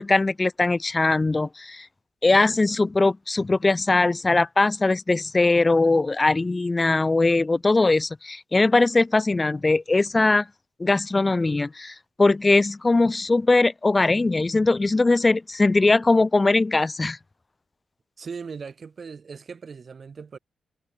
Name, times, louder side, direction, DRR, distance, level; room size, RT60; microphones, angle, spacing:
voice 1, 0.0-1.9 2.2-10.5 10.8-17.2, left 3 dB, 20° left, 0.9 m, -21 dB
voice 2, 18.2-20.4, right 5 dB, 40° right, 3.5 m, -38 dB
wide cardioid pair, 130°, 0 cm